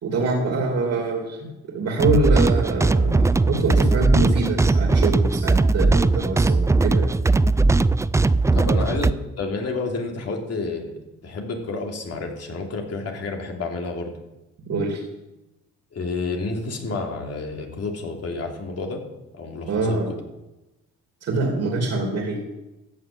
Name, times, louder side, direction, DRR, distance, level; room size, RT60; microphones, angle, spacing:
voice 1, 0.0-7.1 8.5-8.8 14.7-15.0 19.7-20.1 21.2-22.4, right 2 dB, 55° right, 1 dB, 2.9 m, -25 dB
sound 1, 2.0-9.1, right 3 dB, 10° right, 0.3 m, -19 dB
voice 2, 8.5-14.1 15.9-19.0 19.3-20.0, left 3 dB, 55° left, 1 dB, 3.0 m, -30 dB
14.0 x 6.4 x 8.7 m, 0.99 s
cardioid pair, 90°, 30 cm